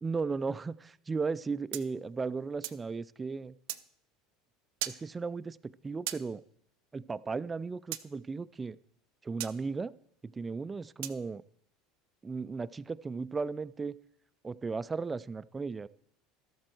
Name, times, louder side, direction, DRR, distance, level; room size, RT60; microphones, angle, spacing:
voice 1, 0.0-3.6 4.9-6.4 6.9-8.8 9.2-9.9 10.3-11.4 12.2-14.0 14.4-15.9, right 4 dB, 20° right, 17 dB, 0.3 m, -35 dB
sound 1, 1.7-2.8 3.7-3.8 4.8-5.0 6.1-6.2 7.9-8.0 9.4-9.5 11.0-11.2, right 16 dB, 75° right, 0.5 m, -37 dB
13.0 x 7.6 x 4.5 m, 0.69 s
supercardioid pair, 95°, 0 cm